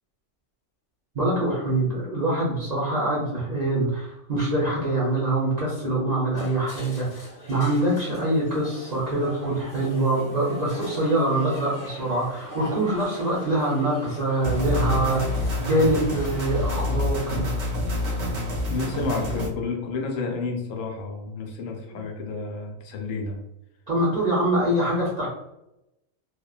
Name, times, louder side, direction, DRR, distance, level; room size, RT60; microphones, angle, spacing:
voice 1, 1.1-17.5 23.9-25.3, right 1 dB, 45° right, -6 dB, 0.6 m, -24 dB
sound 1, 6.3-16.9, right 1 dB, 15° left, 0.5 m, -42 dB
sound 2, 14.4-19.5, left 1 dB, 80° right, 1.0 m, -27 dB
voice 2, 18.7-23.4, left 4 dB, 80° left, 2 dB, 0.9 m, -30 dB
2.8 x 2.1 x 2.3 m, 0.87 s
omnidirectional pair, 1.3 m